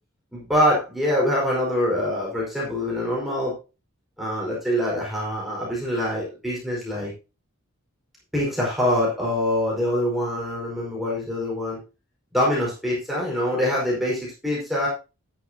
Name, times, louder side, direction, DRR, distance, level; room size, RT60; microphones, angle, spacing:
voice 1, 0.3-3.6 4.2-7.1 8.3-11.8 12.3-14.9, left 1 dB, ahead, -5 dB, 4.9 m, -24 dB
12.0 x 9.7 x 2.8 m, 0.30 s
head